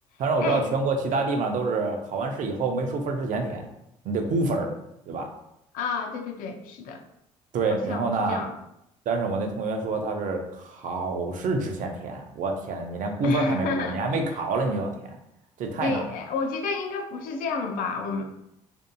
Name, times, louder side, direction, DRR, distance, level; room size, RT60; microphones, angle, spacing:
voice 1, 0.2-3.7 4.0-4.7 5.1-5.3 7.5-8.4 9.1-14.9 15.6-16.1, right 3 dB, 60° right, 3 dB, 0.6 m, -27 dB
voice 2, 5.7-7.0 7.7-8.6 13.2-14.0 15.8-18.2, left 4 dB, 65° left, 5 dB, 0.4 m, -30 dB
2.7 x 2.4 x 2.2 m, 0.79 s
hypercardioid pair, 55°, 15 cm